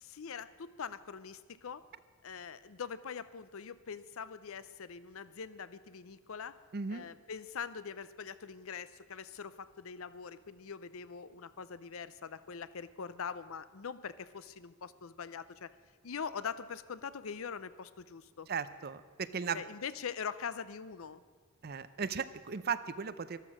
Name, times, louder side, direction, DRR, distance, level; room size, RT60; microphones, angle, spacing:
voice 1, 0.0-1.8 2.2-6.6 6.9-15.7 16.0-18.5 19.5-21.2, left 6 dB, 75° left, 15 dB, 0.6 m, -43 dB
voice 2, 6.7-7.1 18.5-19.6 21.6-23.4, right 6 dB, 50° right, 13 dB, 0.6 m, -36 dB
13.5 x 12.0 x 6.2 m, 1.5 s
head